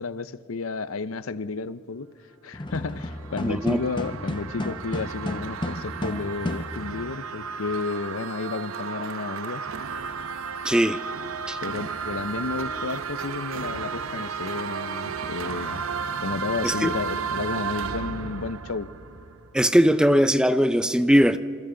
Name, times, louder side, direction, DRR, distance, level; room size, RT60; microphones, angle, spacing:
voice 1, 0.0-2.1 2.4-9.7 11.6-15.8 16.2-18.9, left 4 dB, 90° left, 15 dB, 0.6 m, -32 dB
sound 1, 2.5-7.2, left 1 dB, 20° left, 0.8 m, -33 dB
sound 2, 2.8-19.7, right 6 dB, 85° right, 0.8 m, -33 dB
voice 2, 3.4-3.8 10.6-11.0 11.5-11.6 16.6-16.9 19.5-21.4, equal, 5° right, 11 dB, 0.4 m, -20 dB
27.0 x 27.0 x 3.8 m, 2.4 s
head